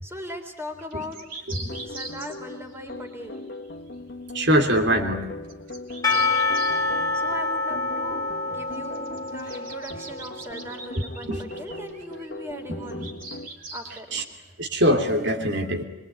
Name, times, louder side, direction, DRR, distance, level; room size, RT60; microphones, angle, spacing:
voice 1, 0.0-1.3 1.8-3.5 6.1-6.4 7.1-13.1 13.7-14.5, equal, 10° right, 4 dB, 3.7 m, -39 dB
sound 1, 0.8-3.7 5.4-6.8 8.7-12.3 12.9-14.0, right 3 dB, 45° right, 3.6 m, -41 dB
sound 2, 1.5-13.5, left 2 dB, 55° left, 1.7 m, -39 dB
voice 2, 4.3-5.3 11.3-11.4 12.7-13.1 14.1-14.2 14.6-15.8, equal, 60° right, 3 dB, 3.0 m, -23 dB
Percussion / Church bell, 6.0-10.8, left 3 dB, 20° left, 2.9 m, -27 dB
24.5 x 23.0 x 9.6 m, 1.0 s
head